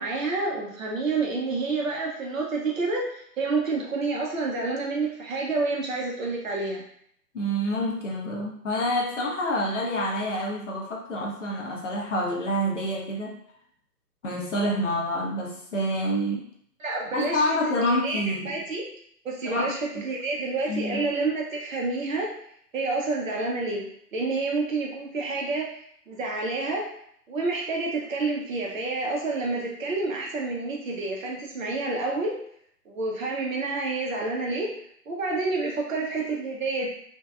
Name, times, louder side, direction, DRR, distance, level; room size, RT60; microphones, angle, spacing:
voice 1, 0.0-6.8 16.8-18.8 19.2-22.3 22.7-23.9 24.1-25.8 26.1-26.9 27.3-32.4 32.9-34.7 35.1-36.9, right 3 dB, 55° right, -1 dB, 0.7 m, -28 dB
voice 2, 7.3-13.4 14.2-16.5 17.1-18.6 19.5-20.0 20.7-21.1, equal, 50° left, -1 dB, 0.6 m, -28 dB
2.6 x 2.1 x 2.3 m, 0.66 s
figure-of-eight pair, 130°, 49 cm